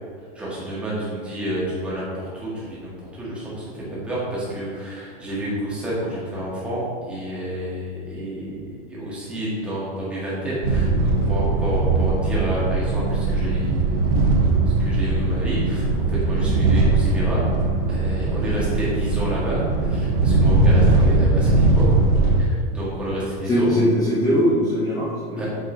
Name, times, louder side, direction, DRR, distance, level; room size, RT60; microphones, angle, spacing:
voice 1, 0.4-8.6 8.9-14.4 14.8-17.4 17.9-22.0 22.2-23.7 25.4-25.5, right 1 dB, 5° right, -8 dB, 1.9 m, -30 dB
sound 1, 10.6-22.4, right 2 dB, 75° right, 1.5 m, -20 dB
voice 2, 23.4-25.5, equal, 10° left, -10 dB, 1.2 m, -21 dB
8.5 x 5.5 x 4.0 m, 2.2 s
supercardioid pair, 175°, 30 cm